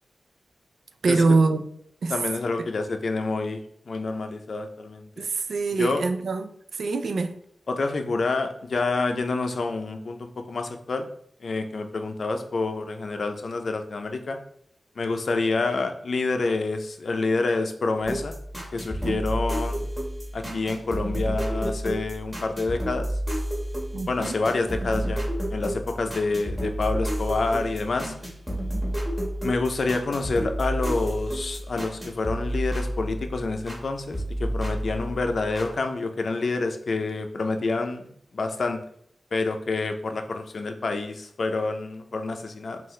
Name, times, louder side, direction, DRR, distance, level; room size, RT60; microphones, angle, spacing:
voice 1, 1.0-1.6 2.0-2.2 2.6-2.7 5.2-7.3 19.0-19.2 23.9-24.3, right 3 dB, 90° right, 8 dB, 0.4 m, -24 dB
voice 2, 2.1-3.6 3.9-5.1 5.7-6.0 7.7-11.1 11.4-14.4 15.0-18.4 18.7-19.9 20.3-23.1 24.1-25.2 25.5-28.1 29.4-38.1 38.3-38.8 39.3-42.8, left 3 dB, 60° left, 6 dB, 0.5 m, -28 dB
sound 1, 18.0-33.8 34.1-35.7, equal, 10° right, 1.4 m, -30 dB
5.5 x 2.5 x 3.1 m, 0.69 s
wide cardioid pair, 130°, 0 cm